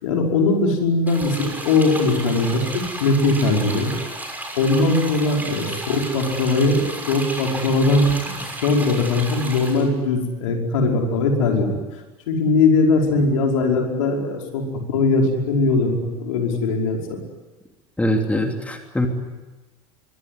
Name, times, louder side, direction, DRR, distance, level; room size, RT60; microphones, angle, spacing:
voice 1, 0.0-3.9 4.6-6.8 7.1-11.7 12.3-17.2, left 3 dB, 65° left, 1 dB, 5.3 m, -20 dB
sound 1, 1.1-9.9, right 2 dB, 10° right, 6.4 m, -33 dB
voice 2, 18.0-19.1, left 1 dB, 5° left, 4 dB, 3.0 m, -22 dB
24.0 x 23.0 x 9.6 m, 1.2 s
figure-of-eight pair, 75°, 18 cm